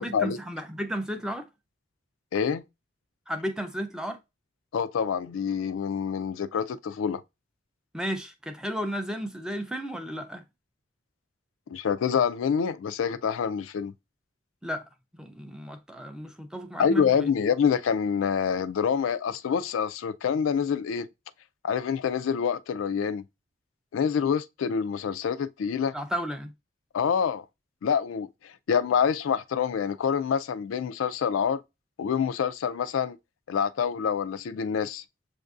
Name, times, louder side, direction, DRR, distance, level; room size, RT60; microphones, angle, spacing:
voice 1, 0.0-1.5 3.3-4.2 7.9-10.4 14.6-14.9 15.2-17.3 25.9-26.5, equal, 5° right, 0.4 m, -33 dB
voice 2, 2.3-2.6 4.7-7.2 11.7-13.9 16.8-21.1 21.6-23.2 23.9-25.9 26.9-27.4 27.8-31.6 32.0-33.2 33.5-35.0, left 7 dB, 80° left, 0.3 m, -26 dB
7.1 x 2.6 x 2.3 m
head